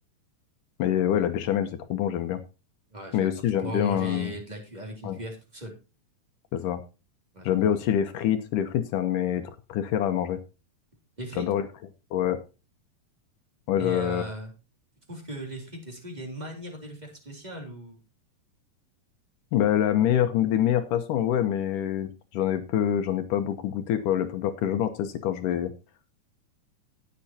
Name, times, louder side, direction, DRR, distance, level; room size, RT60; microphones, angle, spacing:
voice 1, 0.8-2.4 3.1-4.3 5.0-5.2 6.5-6.8 7.4-10.4 11.4-11.7 12.1-12.4 13.7-14.3 19.5-25.7, left 10 dB, 75° left, 8 dB, 2.4 m, -25 dB
voice 2, 2.9-3.3 3.6-5.7 7.3-7.8 11.2-11.5 13.8-14.5 15.1-18.0, equal, 15° right, 2 dB, 3.1 m, -38 dB
18.5 x 7.8 x 2.8 m, 0.30 s
omnidirectional pair, 3.8 m